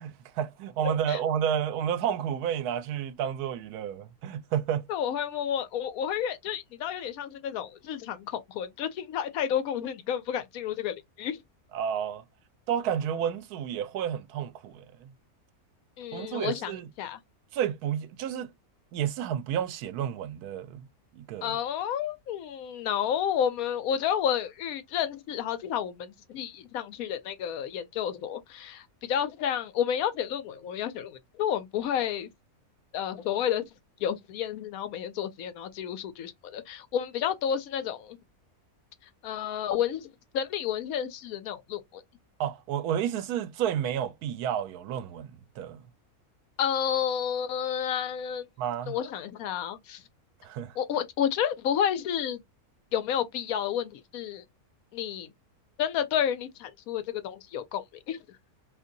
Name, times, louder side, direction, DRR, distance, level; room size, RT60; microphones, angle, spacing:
voice 1, 0.0-4.8 11.7-12.2 12.7-15.1 16.1-16.9 17.5-18.5 18.9-20.9 21.1-21.6 42.4-45.8 48.6-49.0 50.4-50.7, right 9 dB, 80° right, 1.1 m, -31 dB
voice 2, 0.8-1.2 4.9-11.4 16.0-17.2 21.4-32.3 32.9-33.7 34.0-38.2 39.2-40.1 40.3-42.0 46.6-48.4 48.9-50.0 50.8-52.4 52.9-54.4 54.9-55.3 55.8-58.2, left 9 dB, 75° left, 1.0 m, -31 dB
2.8 x 2.6 x 3.8 m
omnidirectional pair, 1.6 m